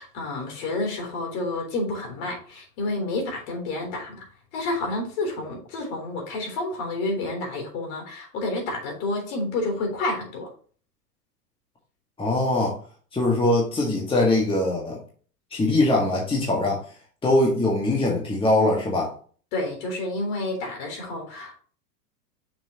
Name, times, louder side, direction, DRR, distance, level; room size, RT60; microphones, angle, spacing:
voice 1, 0.0-4.2 4.5-10.5 19.5-21.6, left 2 dB, 50° left, 1 dB, 3.5 m, -29 dB
voice 2, 12.2-12.8 13.1-15.0 15.5-16.8 17.2-19.1, left 2 dB, 10° left, -2 dB, 1.7 m, -22 dB
6.8 x 6.1 x 2.9 m, 0.42 s
hypercardioid pair, 105°, 48 cm